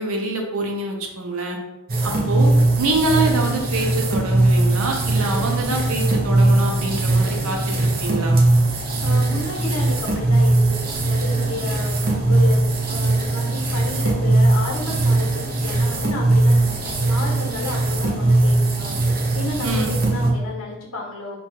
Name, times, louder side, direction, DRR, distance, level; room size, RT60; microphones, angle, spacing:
voice 1, 0.0-1.6 2.0-2.5 2.8-8.4 19.6-20.0, right 2 dB, 75° right, 1 dB, 0.8 m, -25 dB
sound 1, 1.9-20.3, right 2 dB, 40° right, 0.7 m, -20 dB
voice 2, 2.0-2.3 9.0-12.6 12.9-21.4, left 2 dB, 75° left, -2 dB, 1.2 m, -32 dB
4.3 x 2.4 x 4.2 m, 0.98 s
head